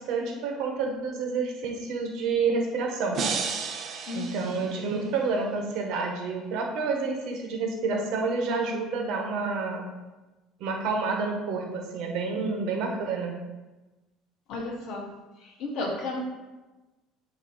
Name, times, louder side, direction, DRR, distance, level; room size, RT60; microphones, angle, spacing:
voice 1, 0.0-3.2 4.1-9.8 10.6-13.3, right 4 dB, 55° right, 1 dB, 1.3 m, -29 dB
sound 1, 3.1-5.3, right 5 dB, 35° right, 0.7 m, -33 dB
voice 2, 4.1-4.6 14.5-15.1 15.4-16.3, left 2 dB, 50° left, 0 dB, 1.4 m, -33 dB
8.6 x 3.0 x 4.6 m, 1.1 s
cardioid pair, 160°, 0 cm